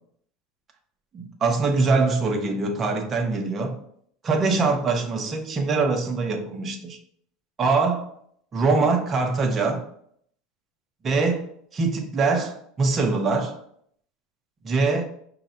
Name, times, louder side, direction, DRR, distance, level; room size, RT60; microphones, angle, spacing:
voice 1, 1.1-3.8 4.2-7.0 7.6-8.1 8.5-9.9 11.0-13.6 14.6-15.0, right 4 dB, 20° right, 4 dB, 0.5 m, -23 dB
5.5 x 2.1 x 3.7 m, 0.66 s
supercardioid pair, 170°, 0 cm